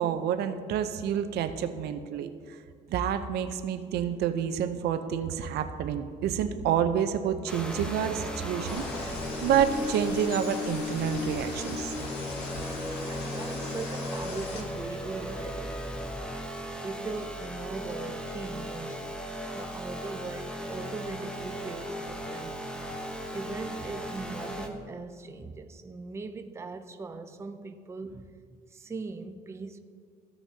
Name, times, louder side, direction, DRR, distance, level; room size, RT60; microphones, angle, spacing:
voice 1, 0.0-2.6 2.9-11.9, right 8 dB, 75° right, 0.6 m, -29 dB
sound 1, 7.5-24.7, left 1 dB, 5° left, 0.9 m, -36 dB
sound 2, 8.7-14.6, left 2 dB, 85° left, 1.7 m, -40 dB
voice 2, 13.1-15.8 16.8-19.1 19.5-22.6 23.3-29.8, right 3 dB, 15° right, 0.5 m, -40 dB
15.0 x 5.9 x 2.8 m
cardioid pair, 110°, 17 cm